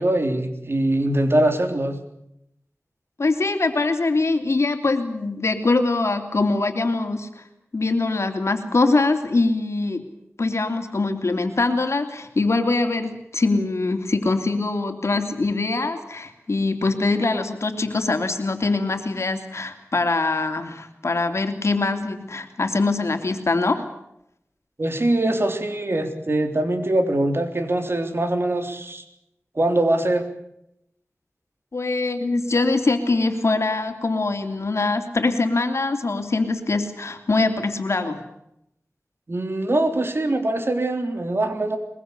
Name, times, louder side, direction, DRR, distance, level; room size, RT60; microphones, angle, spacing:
voice 1, 0.0-2.0 24.8-29.0 29.6-30.3 39.3-41.8, right 1 dB, 55° right, 6 dB, 3.5 m, -22 dB
voice 2, 3.2-7.4 7.7-10.0 10.4-23.8 31.7-38.2, left 3 dB, 70° left, 6 dB, 2.9 m, -23 dB
22.5 x 22.0 x 8.3 m, 0.81 s
wide cardioid pair, 50°, 5 cm